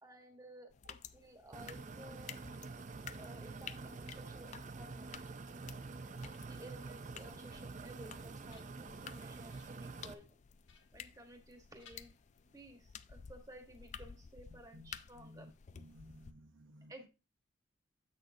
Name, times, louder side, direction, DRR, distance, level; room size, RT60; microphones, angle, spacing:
voice 1, 0.0-2.4 3.2-5.1 6.2-10.3 10.9-12.1 12.5-15.5 16.9-17.1, right 1 dB, 20° right, 1.3 m, -55 dB
sound 1, 0.7-16.3, left 7 dB, 35° left, 0.3 m, -54 dB
sound 2, 1.5-10.1, right 3 dB, 40° right, 0.5 m, -47 dB
sound 3, 7.4-7.9 8.3-9.1 9.5-9.9 10.7-11.5 11.8-12.7, left 6 dB, 75° left, 1.2 m, -66 dB
voice 2, 14.5-14.9 15.1-17.1, left 1 dB, 80° right, 0.9 m, -57 dB
7.9 x 6.4 x 2.7 m
head